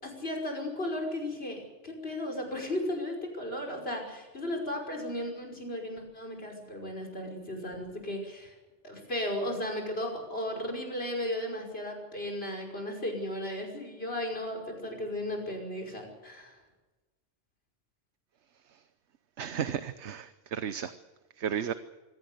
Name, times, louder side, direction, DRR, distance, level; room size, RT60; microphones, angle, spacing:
voice 1, 0.0-8.5 8.8-16.6, left 1 dB, 55° left, 5.9 m, -35 dB
voice 2, 19.4-20.9 21.4-21.7, right 8 dB, 70° right, 1.2 m, -33 dB
24.0 x 16.5 x 8.2 m
omnidirectional pair, 1.2 m